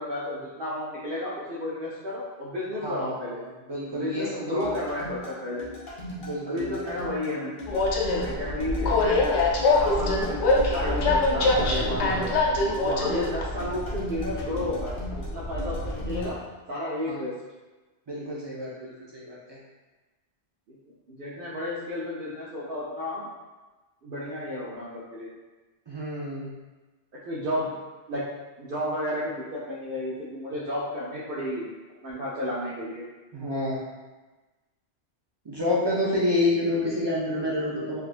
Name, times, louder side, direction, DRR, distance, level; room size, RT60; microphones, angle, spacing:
voice 1, 0.0-3.4 3.9-5.7 6.5-7.6 8.2-9.4 9.7-12.4 12.8-14.9 15.3-16.4 16.7-17.3 20.7-20.8 21.1-23.3 24.0-25.3 27.3-27.7 28.1-28.2 28.6-31.7 32.0-33.0, left 1 dB, 60° right, -6 dB, 0.7 m, -32 dB
voice 2, 2.8-4.7 6.2-6.8 12.0-12.3 12.8-13.2 17.1-17.2 18.1-19.6 25.9-26.5 33.3-33.8 35.4-38.0, left 1 dB, 45° right, -6 dB, 0.3 m, -29 dB
sound 1, 4.6-16.3, equal, 55° left, 1.0 m, -39 dB
Train, 7.7-16.3, left 2 dB, 85° left, 0.9 m, -25 dB
3.6 x 2.5 x 2.4 m, 1.2 s
omnidirectional pair, 1.1 m